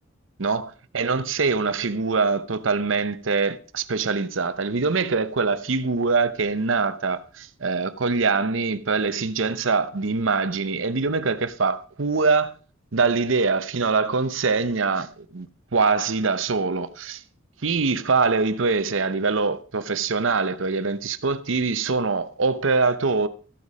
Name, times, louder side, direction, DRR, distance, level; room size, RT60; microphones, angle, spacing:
voice 1, 0.4-12.5 12.9-17.2 17.6-23.3, right 4 dB, 85° right, 0.8 m, -23 dB
14.5 x 8.3 x 4.9 m
head